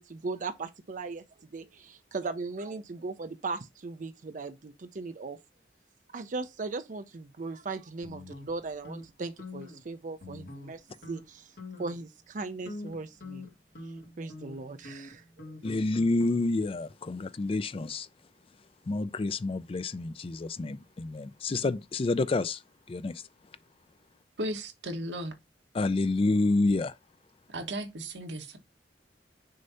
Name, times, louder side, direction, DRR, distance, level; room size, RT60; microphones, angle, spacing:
voice 1, 0.0-5.4 6.1-11.5 11.8-13.5 13.8-15.5, right 3 dB, 45° right, 0.5 m, -38 dB
sound 1, 8.0-9.1 9.4-9.8 10.2-10.8 11.0-11.2 11.6-12.0 12.4-16.7, left 2 dB, 65° left, 1.8 m, -44 dB
voice 2, 15.6-18.1 18.9-22.6 22.9-23.1 25.7-26.9, left 2 dB, 30° left, 0.4 m, -28 dB
voice 3, 24.4-25.3 27.5-28.6, right 1 dB, 80° right, 1.2 m, -35 dB
6.4 x 2.7 x 5.5 m
head